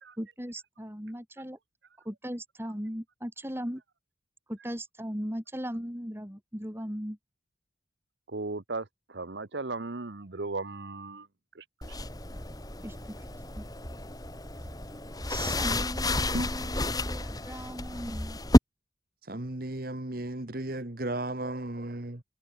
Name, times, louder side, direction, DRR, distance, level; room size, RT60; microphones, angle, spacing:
voice 1, 0.2-1.6 2.1-3.8 4.5-7.2 12.8-13.2 13.6-13.7 15.3-18.4, equal, 10° right, 3.9 m, -38 dB
voice 2, 8.3-11.3 11.6-11.7, right 3 dB, 65° right, 1.1 m, -36 dB
sound 1, 11.8-18.6, left 1 dB, 20° left, 3.1 m, -30 dB
voice 3, 19.2-22.2, right 1 dB, 50° right, 1.6 m, -34 dB
head